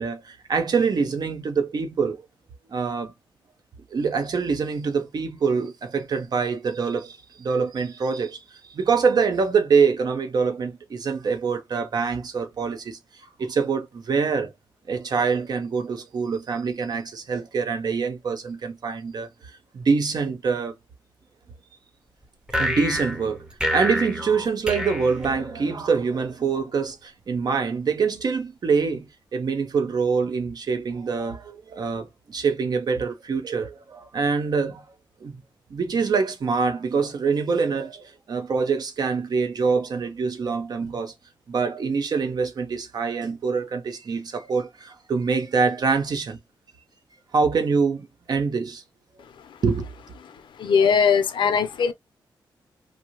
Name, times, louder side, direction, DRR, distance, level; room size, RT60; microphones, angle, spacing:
voice 1, 0.0-2.2 2.7-3.1 3.9-8.4 8.7-13.0 13.4-14.5 14.9-19.3 19.7-20.7 22.6-23.4 23.7-34.8 35.2-35.4 35.7-41.1 41.5-46.4 47.3-48.8 49.6-49.9, right 5 dB, 50° right, 0.8 m, -25 dB
sound 1, 22.5-25.9, equal, 10° right, 0.8 m, -28 dB
voice 2, 50.6-51.9, left 6 dB, 70° left, 0.7 m, -20 dB
2.8 x 2.1 x 3.0 m
cardioid pair, 95°, 8 cm